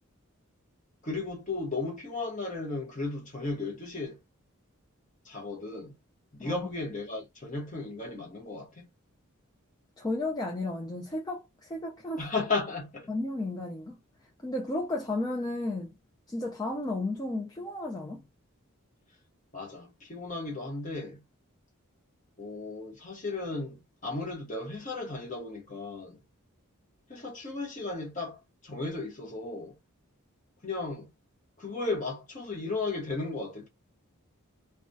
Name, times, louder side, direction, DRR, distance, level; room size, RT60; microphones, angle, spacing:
voice 1, 1.0-4.2 5.2-6.0 6.3-8.9 12.2-13.1 19.5-21.2 22.4-26.2 27.1-29.8 30.6-31.1 31.6-33.7, left 3 dB, 35° left, 0.9 m, -35 dB
voice 2, 10.0-12.2 13.1-14.0 14.4-15.9 16.3-18.2, left 2 dB, 15° left, 0.3 m, -33 dB
2.2 x 2.2 x 2.5 m
head